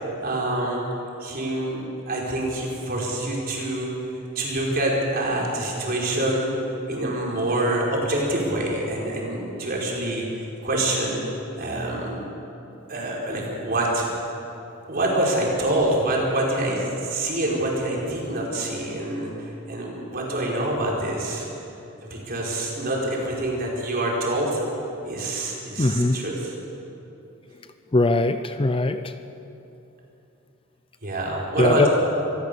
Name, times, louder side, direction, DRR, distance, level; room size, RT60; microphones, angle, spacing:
voice 1, 0.2-0.8 1.2-3.9 4.3-6.5 6.9-11.2 11.6-12.2 12.9-14.1 14.9-19.3 19.7-21.5 22.1-24.6 25.0-26.5 31.0-31.9, right 1 dB, 45° right, -3 dB, 4.8 m, -26 dB
voice 2, 25.8-26.2 27.9-29.1 31.6-31.9, left 2 dB, 25° left, 10 dB, 0.6 m, -21 dB
25.5 x 15.0 x 7.0 m, 2.9 s
head